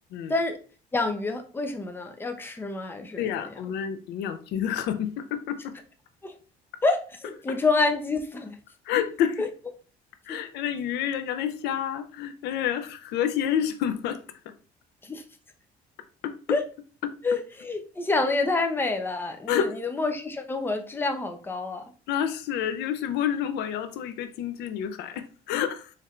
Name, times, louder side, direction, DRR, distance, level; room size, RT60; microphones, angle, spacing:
voice 1, 0.3-0.6 0.9-3.5 6.2-6.3 6.8-8.6 9.4-9.5 10.3-10.4 15.0-15.2 16.5-16.6 17.2-21.8, left 3 dB, 15° left, 0.6 m, -28 dB
voice 2, 3.2-5.7 8.9-9.4 10.3-14.2 16.2-16.3 17.0-17.1 19.5-19.8 22.1-25.9, left 9 dB, 85° left, 0.5 m, -29 dB
4.3 x 3.2 x 2.4 m
cardioid pair, 110°, 17 cm